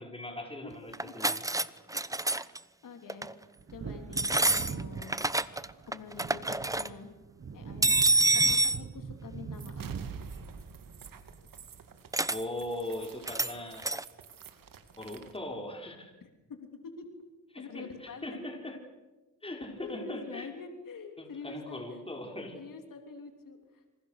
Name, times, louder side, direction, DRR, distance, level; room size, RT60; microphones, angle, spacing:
voice 1, 0.0-1.4 12.3-13.9 15.0-16.1 17.5-18.8 19.4-20.5 21.2-22.6, left 1 dB, 15° left, 2 dB, 5.3 m, -40 dB
voice 2, 0.6-1.1 1.9-2.2 2.8-3.3 3.7-5.3 5.9-7.1 7.5-8.0 8.3-9.9 16.2-16.7 16.9-17.1 17.6-18.4 19.8-22.0 22.5-23.9, left 5 dB, 75° left, 4 dB, 3.4 m, -46 dB
sound 1, 0.9-1.7 1.9-2.6 3.1-3.3 4.1-5.7 5.9-6.9 7.8-8.8 12.1-12.4 13.3-13.5 13.8-14.0, right 2 dB, 10° right, 0.9 m, -27 dB
Wind / Thunder, 3.5-11.8 12.1-12.2, right 6 dB, 45° right, 1.3 m, -43 dB
sound 2, 9.5-15.4, right 6 dB, 80° right, 2.4 m, -47 dB
27.0 x 26.5 x 6.7 m, 1.2 s
cardioid pair, 85°, 33 cm